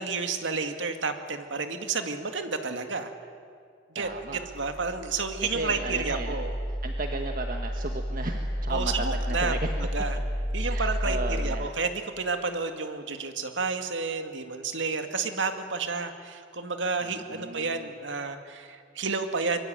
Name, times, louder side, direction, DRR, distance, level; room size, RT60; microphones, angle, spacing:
voice 1, 0.0-3.1 3.9-4.1 4.5-6.5 8.7-10.2 10.5-19.6, right 4 dB, 80° right, 7 dB, 2.1 m, -31 dB
voice 2, 3.9-4.5 5.4-6.4 6.7-9.7 10.6-11.7 17.0-17.9, right 2 dB, 50° right, 4 dB, 1.5 m, -35 dB
sound 1, 4.0-11.5, equal, 15° left, 6.6 m, -31 dB
24.5 x 23.5 x 9.0 m, 2.3 s
head